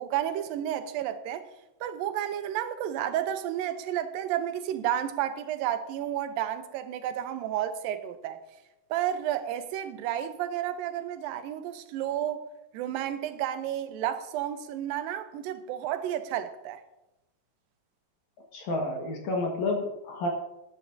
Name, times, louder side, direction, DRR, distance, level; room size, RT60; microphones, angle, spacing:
voice 1, 0.0-1.5 1.8-8.4 8.9-12.5 12.7-16.8, right 11 dB, 90° right, 2.5 m, -31 dB
voice 2, 18.5-20.3, left 2 dB, 60° left, 2.7 m, -30 dB
18.5 x 10.0 x 2.7 m
omnidirectional pair, 4.0 m